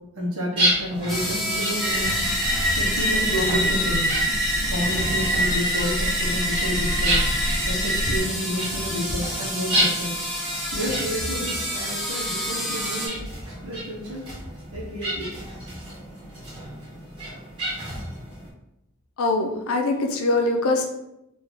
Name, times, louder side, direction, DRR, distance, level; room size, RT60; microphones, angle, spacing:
voice 1, 0.2-2.2 2.7-4.1 4.6-7.2 7.7-10.1 10.7-13.2 13.6-14.2 14.7-15.4, equal, 75° right, -4 dB, 0.8 m, -30 dB
sound 1, 0.6-18.5, right 1 dB, 25° right, 1.5 m, -31 dB
sound 2, 1.1-13.1, equal, ahead, 0.6 m, -30 dB
sound 3, 1.8-8.2, equal, 40° right, 1.0 m, -25 dB
voice 2, 19.2-20.9, left 2 dB, 80° left, 3 dB, 0.5 m, -22 dB
3.2 x 2.5 x 3.6 m, 0.88 s
head